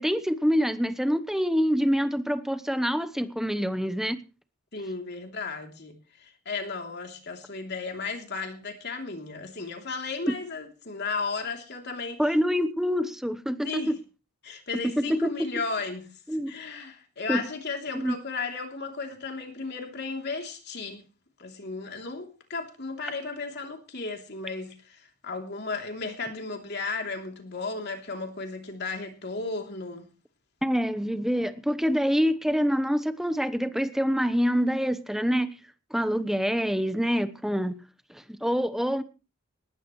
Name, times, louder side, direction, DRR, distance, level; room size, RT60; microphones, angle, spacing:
voice 1, 0.0-4.2 12.2-14.0 14.8-15.5 16.3-16.5 17.3-17.4 17.9-18.2 30.6-35.5 35.9-37.8 38.1-39.0, equal, ahead, 0.9 m, -26 dB
voice 2, 4.7-12.2 13.6-13.9 14.4-16.1 16.5-21.0 21.4-30.1, left 4 dB, 50° left, 3.2 m, -34 dB
20.0 x 15.0 x 3.2 m
head